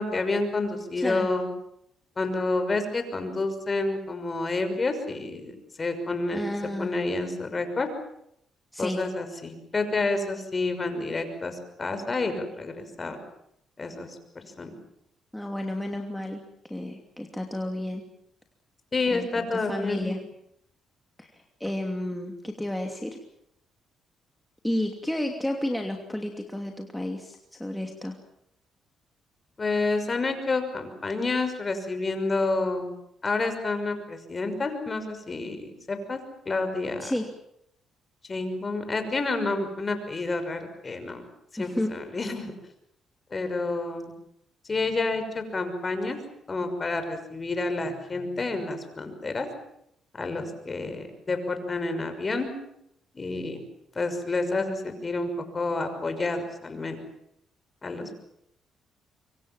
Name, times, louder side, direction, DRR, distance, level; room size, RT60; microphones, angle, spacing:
voice 1, 0.0-1.5 2.2-6.4 6.8-7.9 8.8-13.2 13.8-14.7 18.9-20.1 29.6-32.9 33.2-36.2 36.5-37.1 38.3-41.3 41.5-42.5 43.3-44.1 44.6-46.2 46.5-49.5 50.1-52.5 53.1-53.6 53.9-57.0 57.8-58.1, left 3 dB, 30° left, 8 dB, 6.0 m, -29 dB
voice 2, 1.0-1.3 6.3-6.9 8.7-9.0 15.3-16.4 16.7-18.0 19.1-20.2 21.2-23.2 24.6-28.1 37.0-37.3 41.6-41.9, left 1 dB, 5° left, 2 dB, 2.8 m, -31 dB
25.5 x 24.5 x 7.4 m, 0.76 s
cardioid pair, 90°, 0 cm